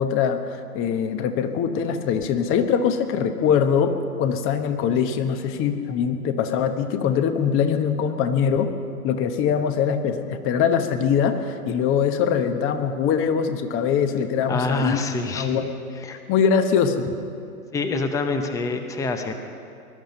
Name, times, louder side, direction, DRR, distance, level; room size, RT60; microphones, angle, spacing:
voice 1, 0.0-8.7 9.0-15.1 15.3-15.7 16.1-17.1, left 7 dB, 25° left, 9 dB, 1.0 m, -22 dB
voice 2, 14.5-15.6 16.0-16.2 17.7-19.4, left 3 dB, 5° left, 7 dB, 0.6 m, -26 dB
20.5 x 11.5 x 5.4 m, 2.4 s
hypercardioid pair, 125°, 47 cm